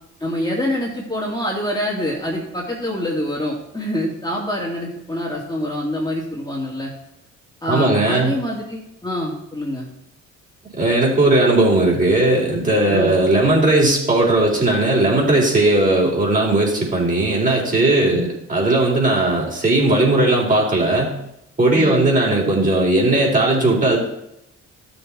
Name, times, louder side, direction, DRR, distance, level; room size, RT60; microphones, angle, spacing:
voice 1, 0.2-6.9 7.6-9.9 12.9-13.1 18.1-18.3 21.7-22.0, left 1 dB, 15° left, -4 dB, 2.7 m, -25 dB
voice 2, 7.7-8.3 10.7-21.1 21.6-24.0, right 2 dB, 25° right, -2 dB, 4.3 m, -17 dB
13.0 x 7.1 x 4.2 m, 0.82 s
cardioid pair, 90°, 30 cm